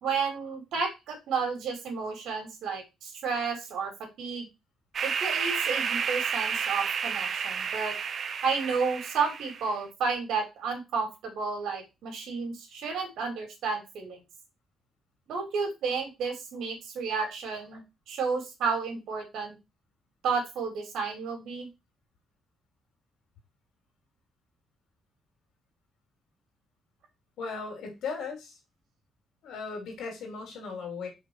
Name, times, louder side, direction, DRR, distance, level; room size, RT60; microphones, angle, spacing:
voice 1, 0.0-3.9 4.2-4.5 5.0-7.9 8.4-14.2 15.3-19.5 20.2-21.7, right 5 dB, 80° right, 4 dB, 2.6 m, -31 dB
sound 1, 4.9-9.7, right 6 dB, 50° right, 0.6 m, -31 dB
voice 2, 27.4-28.6 29.4-31.1, left 5 dB, 80° left, 3 dB, 3.0 m, -37 dB
5.3 x 4.0 x 4.6 m, 0.24 s
cardioid pair, 90°, 0 cm